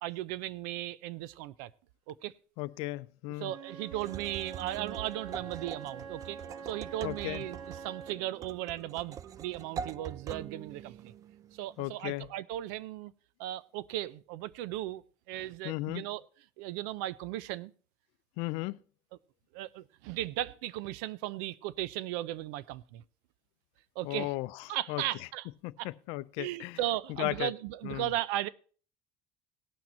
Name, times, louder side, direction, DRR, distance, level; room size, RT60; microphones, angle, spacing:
voice 1, 0.0-1.7 2.1-2.3 3.4-11.1 11.5-13.1 13.4-16.2 16.6-17.7 19.5-23.0 24.0-24.3 24.7-25.5 25.8-25.9 26.4-28.5, right 14 dB, 85° right, 0.5 m, -36 dB
voice 2, 2.6-3.5 7.0-7.4 11.8-12.3 15.6-16.0 18.4-18.8 24.0-24.5 24.9-25.0 25.6-26.8 27.2-27.5 27.8-28.1, left 21 dB, 75° left, 0.5 m, -35 dB
Wind instrument woodwind instrument, 3.4-8.3, right 6 dB, 60° right, 2.0 m, -45 dB
sound 1, 4.0-11.9, right 8 dB, 35° right, 0.5 m, -44 dB
18.0 x 6.1 x 4.2 m
cardioid pair, 125°, 9 cm